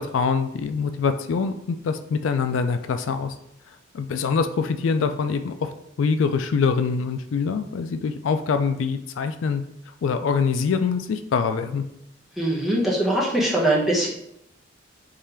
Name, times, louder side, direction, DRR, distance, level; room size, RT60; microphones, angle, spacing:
voice 1, 0.0-3.3 3.9-5.7 6.0-9.6 10.0-11.8, left 5 dB, 85° left, 9 dB, 0.4 m, -24 dB
voice 2, 12.4-14.1, right 1 dB, ahead, -4 dB, 0.9 m, -22 dB
3.7 x 3.2 x 4.4 m, 0.77 s
head